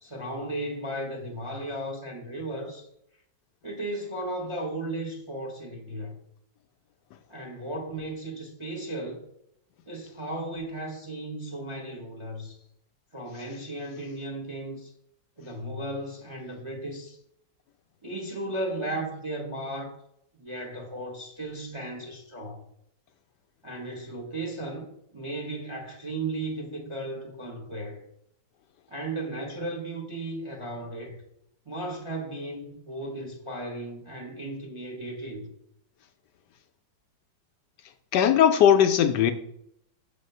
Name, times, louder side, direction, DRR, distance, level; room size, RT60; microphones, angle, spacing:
voice 1, 0.0-2.9 3.6-6.1 7.3-9.2 9.9-12.6 13.1-14.9 15.4-17.2 18.0-19.9 20.4-22.6 23.6-28.0 28.9-31.2 31.7-35.5, right 1 dB, 25° right, 0.7 m, -35 dB
voice 2, 38.1-39.3, left 9 dB, 75° left, 1.1 m, -19 dB
7.2 x 3.3 x 5.4 m
omnidirectional pair, 1.9 m